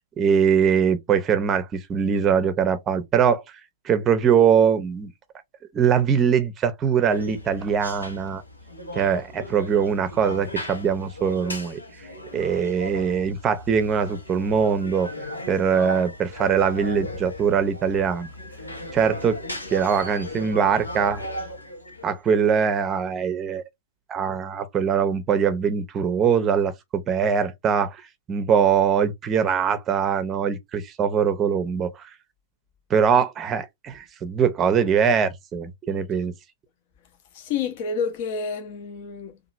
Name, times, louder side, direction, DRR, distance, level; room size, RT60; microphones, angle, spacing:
voice 1, 0.2-3.4 3.8-5.1 5.7-8.4 8.9-11.8 12.3-15.1 15.5-18.3 18.9-19.4 19.7-21.2 22.0-23.6 24.1-28.0 28.3-32.1 32.9-36.3, right 7 dB, 25° right, 0.6 m, -22 dB
sound 1, 7.1-22.2, left 1 dB, 90° left, 1.0 m, -37 dB
voice 2, 37.3-39.4, left 5 dB, 50° left, 0.8 m, -29 dB
2.8 x 2.5 x 2.5 m
figure-of-eight pair, 105°, 0 cm